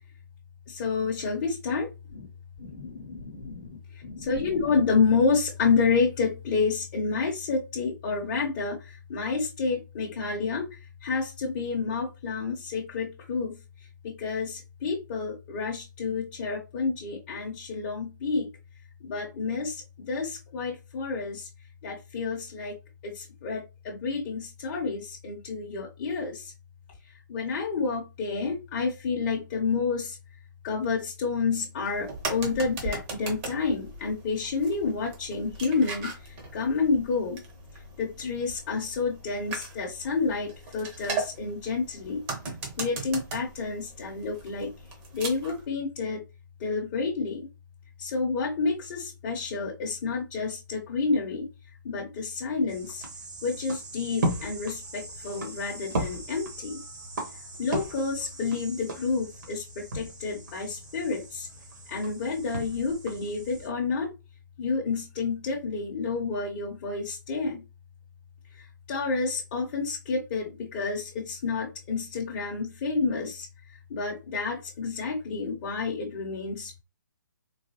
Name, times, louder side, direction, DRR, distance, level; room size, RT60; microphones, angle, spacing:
voice 1, 0.7-2.3 2.8-13.6 14.0-18.5 19.0-21.5 21.8-22.8 23.0-26.5 27.3-30.2 30.6-37.4 38.0-42.2 42.8-44.7 45.1-46.2 46.6-47.5 48.0-51.5 51.8-53.0 53.4-56.8 57.6-61.5 61.9-64.1 64.6-67.6 68.5-76.8, left 4 dB, 30° left, -3 dB, 0.8 m, -29 dB
sound 1, 31.8-45.6, right 3 dB, 25° right, 0.9 m, -39 dB
sound 2, 52.7-63.7, right 1 dB, 60° right, 1.4 m, -37 dB
3.8 x 2.2 x 3.0 m, 0.27 s
hypercardioid pair, 150°, 11 cm